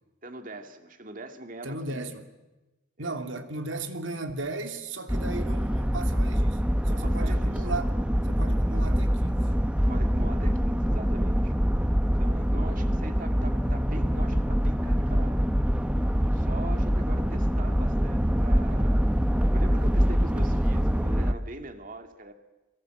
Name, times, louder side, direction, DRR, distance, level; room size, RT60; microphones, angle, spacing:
voice 1, 0.2-2.1 3.0-3.2 6.9-7.7 9.9-11.9 12.2-15.4 16.3-22.3, right 2 dB, 45° right, 7 dB, 2.5 m, -42 dB
voice 2, 1.6-2.2 3.0-7.9 8.2-9.5, right 2 dB, 80° right, 6 dB, 2.9 m, -36 dB
sound 1, 5.1-21.3, equal, 5° right, 0.9 m, -24 dB
29.0 x 23.5 x 8.0 m, 1.1 s
head